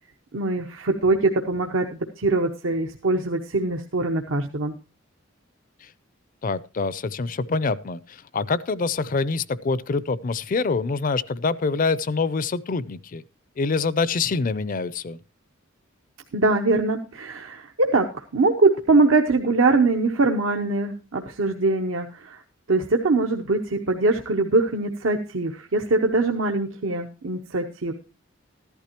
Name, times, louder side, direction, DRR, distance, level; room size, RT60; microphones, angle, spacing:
voice 1, 0.3-4.7 16.3-22.4 22.7-27.9, right 3 dB, 80° right, 0.9 m, -22 dB
voice 2, 6.4-13.2 13.6-15.2, left 4 dB, 40° left, 0.5 m, -25 dB
14.0 x 11.5 x 2.9 m
head